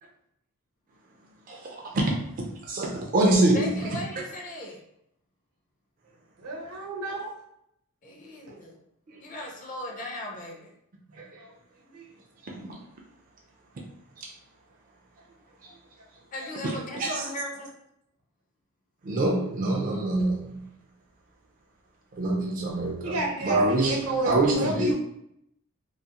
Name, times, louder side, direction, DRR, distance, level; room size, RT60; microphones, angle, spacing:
voice 1, 1.5-2.0 2.4-3.9 9.1-9.2 11.3-11.4 12.4-12.8 14.2-14.3 15.6-15.7 16.6-17.3 19.0-20.6 22.1-24.9, right 2 dB, 35° right, -1 dB, 0.3 m, -26 dB
voice 2, 3.5-4.8 8.0-8.8 9.2-10.7 16.3-17.7, left 1 dB, 35° left, 0 dB, 0.5 m, -37 dB
voice 3, 6.4-7.3 11.1-11.5 11.8-12.1 23.0-24.9, right 2 dB, 85° right, -1 dB, 0.8 m, -31 dB
2.4 x 2.3 x 2.8 m, 0.76 s
head